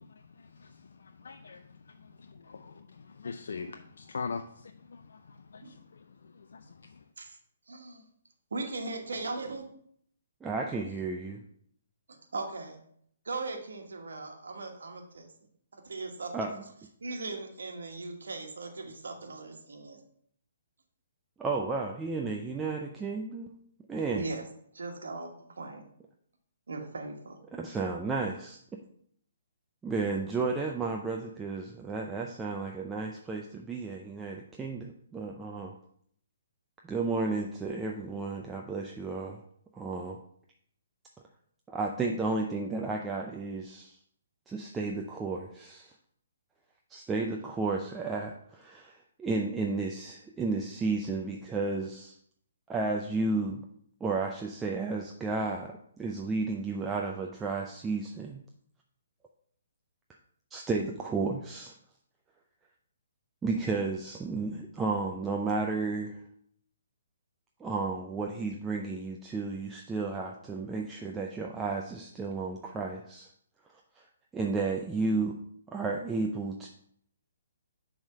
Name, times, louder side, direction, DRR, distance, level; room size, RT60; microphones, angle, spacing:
voice 1, 0.1-2.9 3.2-7.0, left 5 dB, 70° left, 6 dB, 0.4 m, -43 dB
voice 2, 7.7-8.1 8.5-9.6 12.3-12.8 13.2-15.3 15.7-16.3 17.0-20.0 24.1-24.4 24.7-25.3 25.6-25.8 26.7-27.4, right 3 dB, 75° right, 3 dB, 1.3 m, -38 dB
voice 3, 10.4-11.4 16.3-16.6 21.4-23.6 23.9-24.3 27.5-28.6 29.8-35.7 36.8-39.4 39.7-40.2 41.7-44.0 44.5-45.9 46.9-52.1 52.7-53.6 54.0-58.4 60.5-61.7 63.4-66.2 67.6-73.3 74.3-75.4 75.7-76.7, right 3 dB, 10° right, 0 dB, 0.5 m, -32 dB
7.0 x 3.5 x 5.4 m, 0.65 s
hypercardioid pair, 135°, 0 cm